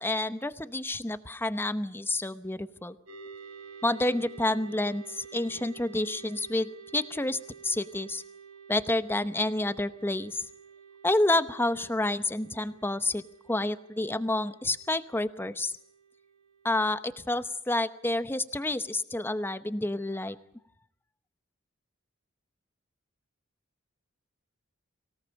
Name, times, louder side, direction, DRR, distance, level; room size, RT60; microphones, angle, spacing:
voice 1, 0.0-3.0 3.8-8.2 8.7-10.5 11.0-13.2 13.5-15.7 16.6-20.4, left 2 dB, 10° left, 12 dB, 0.9 m, -29 dB
sound 1, 3.1-17.0, right 6 dB, 80° right, 4.7 m, -50 dB
24.5 x 18.0 x 8.9 m, 0.71 s
head